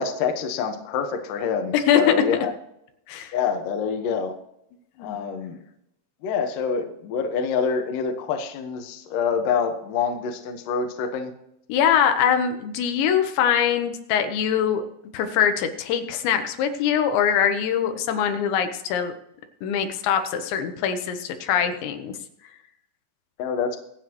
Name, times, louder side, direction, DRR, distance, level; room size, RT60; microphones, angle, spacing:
voice 1, 0.0-2.5 3.3-4.3 5.0-5.6 6.2-11.3 23.4-23.8, left 6 dB, 65° left, 5 dB, 2.5 m, -26 dB
voice 2, 11.7-14.9 15.1-19.1 19.6-22.1, left 8 dB, 85° left, 7 dB, 3.4 m, -23 dB
24.5 x 8.3 x 3.0 m, 0.80 s
omnidirectional pair, 5.1 m